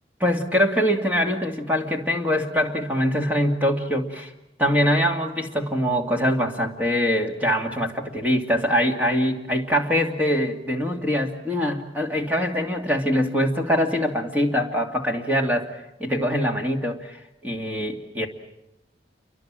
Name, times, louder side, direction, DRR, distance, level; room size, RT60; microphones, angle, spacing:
voice 1, 0.2-4.3 4.6-18.3, equal, 10° right, 2 dB, 2.5 m, -23 dB
29.0 x 24.0 x 7.6 m, 0.86 s
head